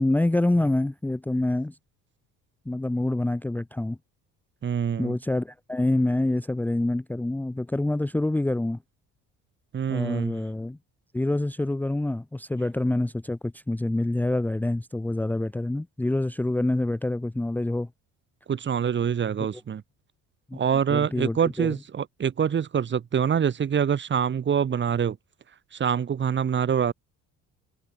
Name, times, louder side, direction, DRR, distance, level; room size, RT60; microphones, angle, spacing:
voice 1, 0.0-1.8 2.7-4.0 5.0-8.8 9.9-10.8 11.1-17.9 20.5-20.6 20.9-21.8, left 2 dB, 5° left, 0.7 m, -26 dB
voice 2, 4.6-5.2 9.7-10.3 18.5-19.8 20.5-25.2 25.7-26.9, right 8 dB, 35° right, 2.3 m, -25 dB
cardioid pair, 120°, 31 cm